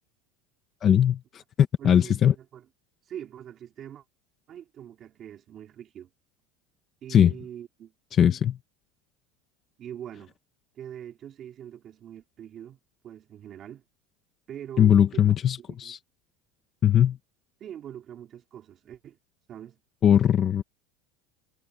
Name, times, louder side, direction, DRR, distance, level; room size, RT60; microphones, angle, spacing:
voice 1, 0.8-2.3 7.1-7.3 8.1-8.6 14.8-16.0 16.8-17.2 20.0-20.6, left 9 dB, 25° left, 0.8 m, -20 dB
voice 2, 1.8-2.7 3.1-4.0 4.5-6.1 7.0-7.9 9.8-10.3 10.7-12.8 13.0-13.8 14.5-15.9 17.6-19.2 19.5-19.8, right 10 dB, 25° right, 3.3 m, -43 dB
cardioid pair, 180°, 0 cm